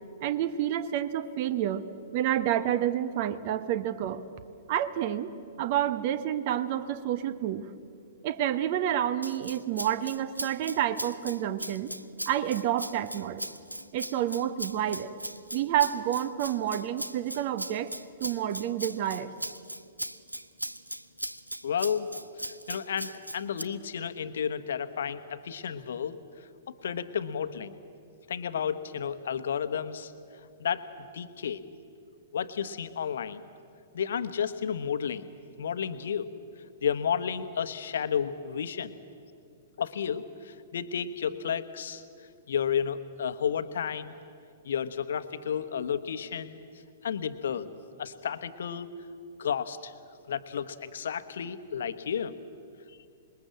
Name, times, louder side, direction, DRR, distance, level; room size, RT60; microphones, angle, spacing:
voice 1, 0.2-1.8 2.1-4.2 4.7-5.3 5.6-7.6 8.2-11.9 12.2-13.5 13.9-15.2 15.5-17.9 18.2-19.3, right 11 dB, 40° right, 13 dB, 1.1 m, -29 dB
Rattle (instrument), 9.2-23.6, right 1 dB, 90° right, 0.6 m, -39 dB
voice 2, 21.6-22.1 22.4-26.2 26.8-27.8 28.3-30.1 30.6-30.9 31.1-31.6 32.3-33.5 33.9-35.3 35.6-36.3 36.8-38.9 39.8-42.0 42.5-44.1 44.6-46.6 47.0-47.7 48.0-48.9 49.4-49.9 50.3-52.4, left 7 dB, 60° left, 11 dB, 1.1 m, -32 dB
26.5 x 21.5 x 7.7 m, 2.4 s
figure-of-eight pair, 105°, 0 cm